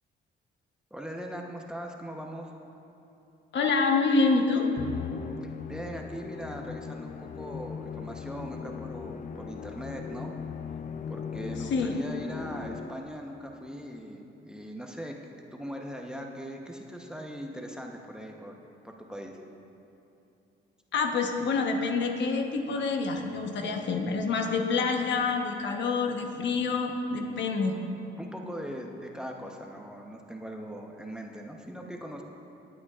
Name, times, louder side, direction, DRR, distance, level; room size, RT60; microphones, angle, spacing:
voice 1, 0.9-2.5 5.4-10.3 11.1-15.2 15.5-18.6 18.8-19.4 28.2-32.2, equal, 5° right, 1 dB, 0.8 m, -40 dB
voice 2, 3.5-4.7 11.7-11.9 20.9-27.8, left 4 dB, 65° left, 3 dB, 1.0 m, -27 dB
Musical instrument, 4.8-13.3, left 6 dB, 40° left, 0.4 m, -39 dB
18.5 x 8.7 x 2.4 m, 2.8 s
cardioid pair, 90°, 20 cm